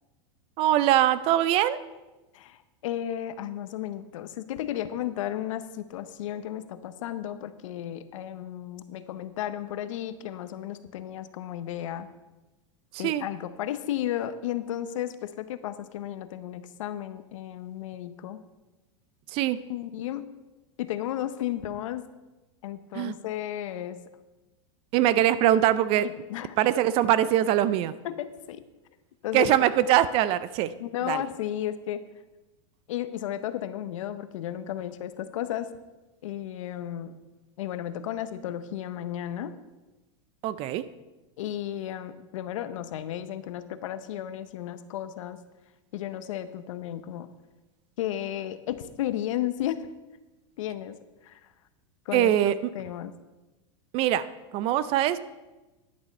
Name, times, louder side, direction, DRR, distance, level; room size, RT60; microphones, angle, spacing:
voice 1, 0.6-1.8 12.9-13.2 19.3-19.6 22.9-23.1 24.9-26.1 26.6-27.9 29.3-30.7 31.1-31.2 40.4-40.8 52.1-52.7 53.9-54.3 54.5-55.2, right 12 dB, 35° right, 16 dB, 0.4 m, -22 dB
voice 2, 2.3-12.1 13.0-18.4 19.7-20.2 20.8-22.0 22.6-24.0 26.0-26.6 28.0-28.6 29.2-29.5 30.8-32.0 32.9-35.7 36.2-37.2 37.6-39.5 41.4-45.4 45.9-47.3 48.0-49.9 50.6-51.0 51.2-51.4 52.1-53.1, left 12 dB, 80° left, 12 dB, 0.8 m, -33 dB
10.5 x 7.1 x 5.3 m, 1.1 s
supercardioid pair, 150°, 16 cm